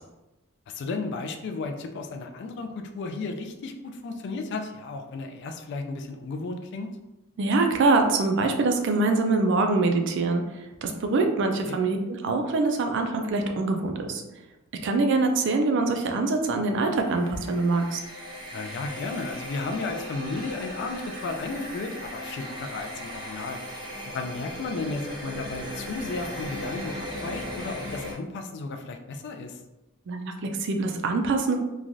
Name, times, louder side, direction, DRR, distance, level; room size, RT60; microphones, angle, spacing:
voice 1, 0.7-6.9 11.6-11.8 18.5-23.6 24.0-27.0 27.2-29.6, left 3 dB, 55° left, 5 dB, 0.3 m, -34 dB
voice 2, 7.4-10.4 10.8-14.2 14.8-18.0 30.1-31.6, right 3 dB, 55° right, 4 dB, 0.4 m, -24 dB
sound 1, 16.9-28.1, left 1 dB, 25° right, 0.9 m, -37 dB
3.1 x 2.3 x 2.5 m, 1.0 s
head